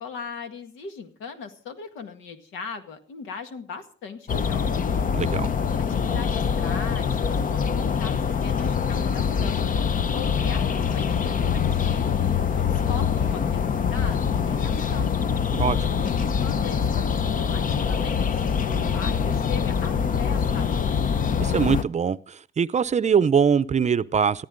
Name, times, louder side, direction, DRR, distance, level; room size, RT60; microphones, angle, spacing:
voice 1, 0.0-4.9 5.9-9.7 10.1-15.2 16.0-21.0, left 5 dB, 90° left, 1.9 m, -39 dB
sound 1, 4.3-21.8, left 7 dB, 40° left, 0.7 m, -24 dB
voice 2, 5.1-5.5 15.5-15.8 21.4-24.5, right 7 dB, 35° right, 0.6 m, -22 dB
sound 2, 11.9-21.1, left 2 dB, 65° left, 3.6 m, -41 dB
19.5 x 13.5 x 3.8 m
cardioid pair, 90°, 20 cm